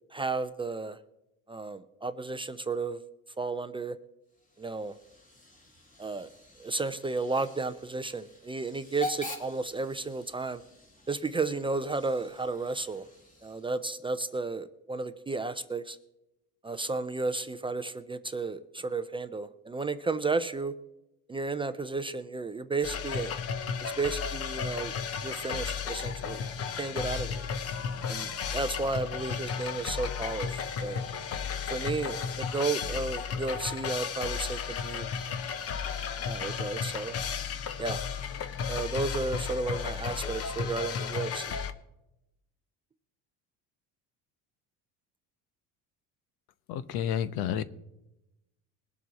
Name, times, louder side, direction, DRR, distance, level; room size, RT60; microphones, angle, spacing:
voice 1, 0.1-1.0 1.5-3.0 3.4-4.0 4.6-4.9 6.0-6.3 6.6-10.6 11.1-13.0 13.4-16.0 16.6-20.7 21.3-23.3 23.8-24.9 25.2-26.4 26.8-27.5 28.1-31.0 31.7-35.1 36.2-37.1 37.8-38.0 38.7-41.6, right 3 dB, 15° right, 10 dB, 0.4 m, -33 dB
Hiss / Train / Alarm, 4.3-13.9, left 1 dB, 20° left, 2.1 m, -45 dB
sound 1, 22.8-41.7, left 6 dB, 40° left, 0.9 m, -34 dB
voice 2, 46.7-47.6, left 9 dB, 75° left, 15 dB, 0.9 m, -30 dB
22.0 x 7.5 x 4.0 m, 0.91 s
cardioid pair, 135°, 38 cm